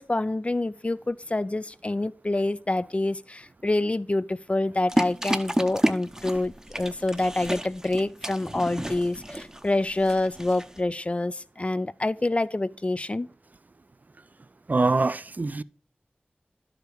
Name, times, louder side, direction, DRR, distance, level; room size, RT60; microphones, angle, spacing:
voice 1, 0.0-13.3, left 2 dB, 35° left, 0.4 m, -27 dB
sound 1, 4.9-10.8, right 1 dB, 15° right, 0.7 m, -31 dB
voice 2, 14.7-15.6, right 3 dB, 50° right, 0.3 m, -24 dB
11.5 x 5.0 x 4.6 m
wide cardioid pair, 55°, 4 cm